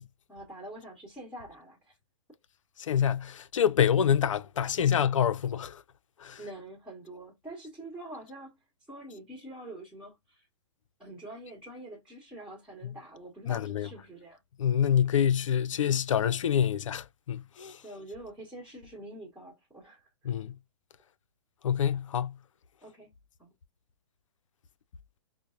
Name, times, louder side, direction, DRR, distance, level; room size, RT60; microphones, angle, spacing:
voice 1, 0.3-2.0 6.4-8.6 8.9-10.5 11.0-14.4 17.8-20.3 22.8-23.1 23.4-23.5, right 1 dB, 5° right, 1.1 m, -45 dB
voice 2, 2.8-5.8 6.2-6.4 13.5-13.9 14.6-17.8 20.2-20.5 21.6-22.4, left 8 dB, 80° left, 0.4 m, -26 dB
4.4 x 2.0 x 2.4 m
hypercardioid pair, 135°, 16 cm